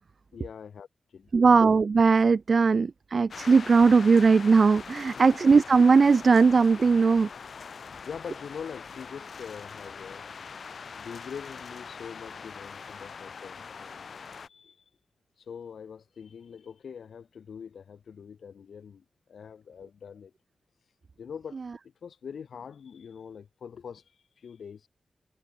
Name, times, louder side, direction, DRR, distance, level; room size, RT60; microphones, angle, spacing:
voice 1, 0.3-1.7 5.2-5.3 8.0-10.3 10.8-14.8 15.4-20.3 21.2-24.9, left 7 dB, 75° left, 7.8 m, -44 dB
voice 2, 1.3-7.3, right 4 dB, 50° right, 2.1 m, -19 dB
sound 1, 3.3-14.5, left 5 dB, 60° left, 3.9 m, -43 dB
wide cardioid pair, 105°, 0 cm